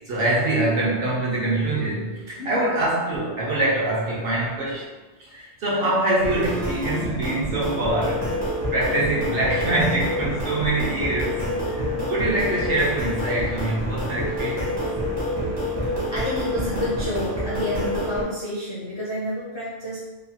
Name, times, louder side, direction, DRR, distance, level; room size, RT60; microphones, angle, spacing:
voice 1, 0.1-4.9 5.2-8.3 8.7-14.8, right 1 dB, 60° right, -5 dB, 0.7 m, -24 dB
sound 1, 6.2-18.2, equal, 30° right, 0.5 m, -27 dB
voice 2, 16.1-20.0, equal, 45° left, -8 dB, 0.3 m, -29 dB
2.9 x 2.1 x 2.7 m, 1.2 s
omnidirectional pair, 1.3 m